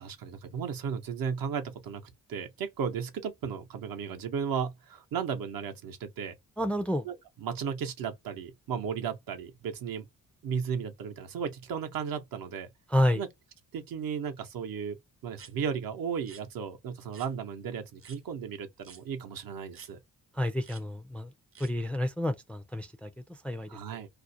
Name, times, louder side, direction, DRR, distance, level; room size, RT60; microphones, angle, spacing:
voice 1, 0.0-2.0 2.3-6.3 7.1-10.1 10.4-12.7 13.2-13.3 13.7-15.0 15.2-20.0 23.7-24.1, right 7 dB, 70° right, 0.7 m, -35 dB
voice 2, 6.6-7.1 12.9-13.2 20.3-21.3 21.6-23.7, left 1 dB, 5° left, 0.3 m, -29 dB
sound 1, 15.3-15.5 16.2-16.4 17.1-17.3 18.0-18.2 18.8-19.0 19.7-19.9 20.6-20.8 21.5-21.7, right 6 dB, 40° right, 0.6 m, -51 dB
2.4 x 2.0 x 2.6 m
cardioid pair, 90°, 36 cm